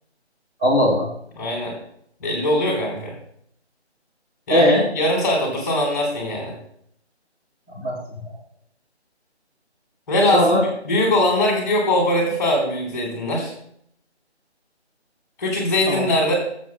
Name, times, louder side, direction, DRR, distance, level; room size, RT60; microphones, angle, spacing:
voice 1, 0.6-1.1 4.5-4.8 7.7-8.3 10.3-10.6 15.9-16.1, equal, 5° right, -10 dB, 1.2 m, -19 dB
voice 2, 1.4-1.7 2.2-3.1 4.5-6.5 10.1-13.5 15.4-16.3, left 1 dB, 15° left, -4 dB, 3.0 m, -21 dB
22.0 x 7.6 x 2.2 m, 0.68 s
figure-of-eight pair, 165°, 34 cm